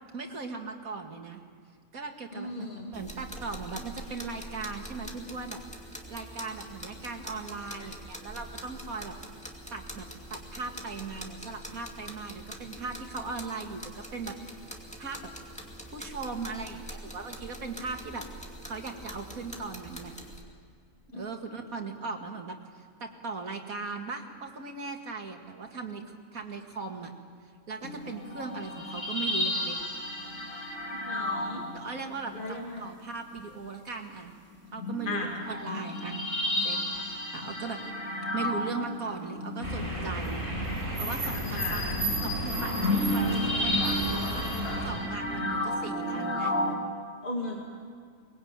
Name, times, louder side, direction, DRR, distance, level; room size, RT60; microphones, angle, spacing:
voice 1, 0.1-1.4 1.9-5.6 6.1-9.1 9.7-14.4 15.0-15.3 15.9-18.3 18.6-20.1 21.1-27.1 27.7-29.8 31.7-34.3 34.7-36.2 36.6-37.8 38.3-40.4 41.0-41.9 42.2-44.5 44.8-46.5, right 4 dB, 90° right, 3 dB, 2.5 m, -38 dB
voice 2, 2.3-2.9 21.1-21.3 30.9-31.6 32.3-32.9 35.1-35.3 41.4-42.0 47.2-47.6, left 2 dB, 35° left, -1 dB, 2.3 m, -36 dB
sound 1, 2.9-20.4, equal, 5° left, 2.6 m, -44 dB
sound 2, 27.8-32.3 33.4-33.5 34.6-46.8, left 1 dB, 65° left, 2.8 m, -32 dB
sound 3, 39.6-44.9, right 1 dB, 40° right, 6.7 m, -33 dB
23.5 x 21.0 x 8.9 m, 2.2 s
omnidirectional pair, 1.4 m